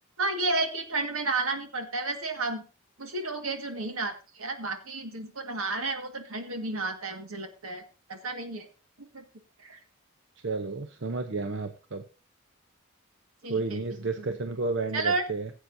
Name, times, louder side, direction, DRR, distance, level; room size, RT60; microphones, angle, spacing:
voice 1, 0.2-2.6 3.0-7.8 8.1-8.7 9.1-9.2 9.6-9.8 13.4-13.8 14.9-15.2, right 3 dB, 80° right, 6 dB, 1.8 m, -31 dB
voice 2, 10.4-12.0 13.5-15.5, right 3 dB, 60° right, 6 dB, 0.8 m, -31 dB
17.0 x 8.1 x 2.7 m, 0.33 s
head